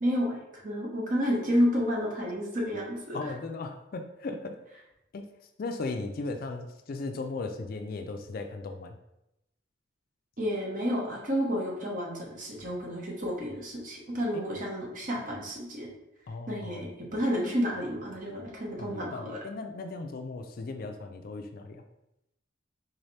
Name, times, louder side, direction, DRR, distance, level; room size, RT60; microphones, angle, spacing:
voice 1, 0.0-3.3 10.4-15.9 16.5-19.4, equal, 45° right, -2 dB, 0.9 m, -30 dB
voice 2, 3.1-4.6 5.1-5.3 5.6-9.0 14.3-14.4 16.3-16.9 18.8-21.8, left 3 dB, 50° left, 6 dB, 0.4 m, -37 dB
4.0 x 3.2 x 2.7 m, 0.86 s
head